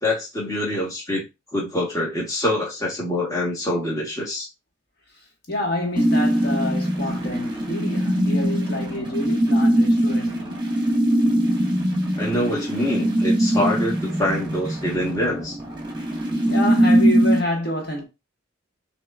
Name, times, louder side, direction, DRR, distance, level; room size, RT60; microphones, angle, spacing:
voice 1, 0.0-1.2 1.5-4.5 12.2-15.6, left 1 dB, 15° left, 1.2 m, -25 dB
voice 2, 5.5-10.6 16.4-18.0, left 1 dB, 50° left, 1.4 m, -28 dB
sound 1, 6.0-17.4, right 1 dB, 20° right, 1.1 m, -21 dB
6.0 x 3.0 x 2.4 m
head